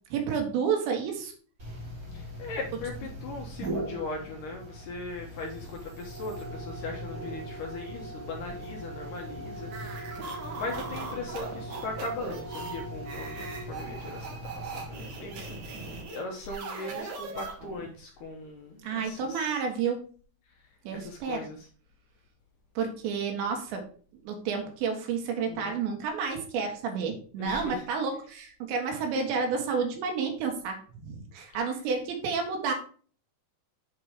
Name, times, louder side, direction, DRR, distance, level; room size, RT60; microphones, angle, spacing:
voice 1, 0.1-1.3 18.8-20.0 20.9-21.4 22.8-23.9 24.2-32.7, right 5 dB, 85° right, 3 dB, 3.8 m, -30 dB
sound 1, 1.6-16.0, right 1 dB, 25° right, 2.4 m, -40 dB
voice 2, 2.1-19.6 20.9-21.7 25.5-25.8 27.4-27.9, left 3 dB, 70° left, 1 dB, 2.1 m, -39 dB
sound 2, 9.6-17.9, right 4 dB, 55° right, 2.5 m, -40 dB
7.7 x 4.7 x 4.9 m, 0.44 s
omnidirectional pair, 5.0 m